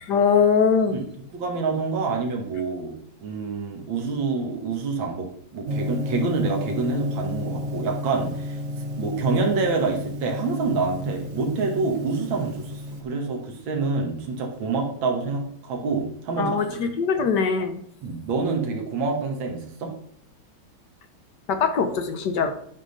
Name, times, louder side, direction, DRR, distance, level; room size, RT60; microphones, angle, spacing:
voice 1, 0.1-1.0 16.4-17.8 21.5-22.5, left 6 dB, 65° left, 7 dB, 1.3 m, -21 dB
voice 2, 1.3-8.6 9.0-16.8 18.0-19.9, right 4 dB, 75° right, 1 dB, 2.1 m, -27 dB
Gong, 5.7-13.0, left 1 dB, 40° right, 1.2 m, -32 dB
10.0 x 3.7 x 6.4 m, 0.65 s
omnidirectional pair, 2.2 m